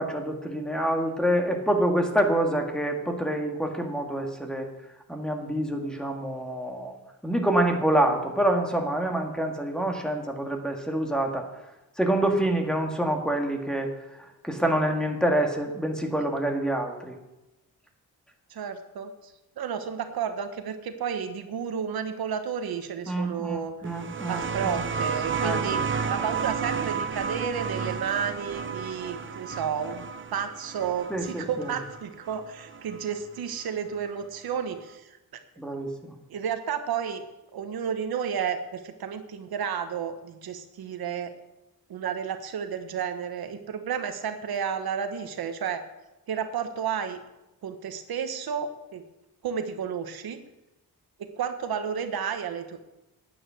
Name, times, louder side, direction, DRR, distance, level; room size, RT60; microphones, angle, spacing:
voice 1, 0.0-4.7 5.1-7.0 7.2-11.5 12.0-13.9 14.2-17.1 23.1-24.4 24.7-24.8 25.4-25.9 31.1-31.7 35.6-36.1, right 1 dB, ahead, 2 dB, 1.8 m, -27 dB
voice 2, 18.5-23.7 24.3-25.8 26.1-30.1 30.3-35.2 36.3-37.2 37.5-41.3 41.9-45.8 46.3-47.2 47.6-49.0 49.4-50.4 51.2-52.8, right 7 dB, 80° right, 8 dB, 1.1 m, -32 dB
sound 1, 23.8-33.1 34.2-34.3, right 6 dB, 35° right, 0.6 m, -32 dB
10.0 x 9.5 x 6.2 m, 1.0 s
wide cardioid pair, 115°, 37 cm